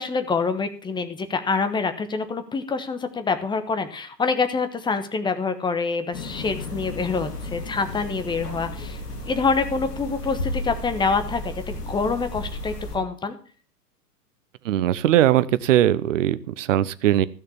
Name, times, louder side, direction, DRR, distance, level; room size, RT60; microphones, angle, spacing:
voice 1, 0.0-9.0 9.3-13.3, left 4 dB, 10° left, 9 dB, 1.1 m, -26 dB
sound 1, 6.1-13.0, left 1 dB, 70° left, 3.3 m, -33 dB
voice 2, 14.6-17.3, right 12 dB, 50° right, 16 dB, 0.9 m, -20 dB
14.5 x 6.5 x 7.0 m, 0.41 s
figure-of-eight pair, 105°, 49 cm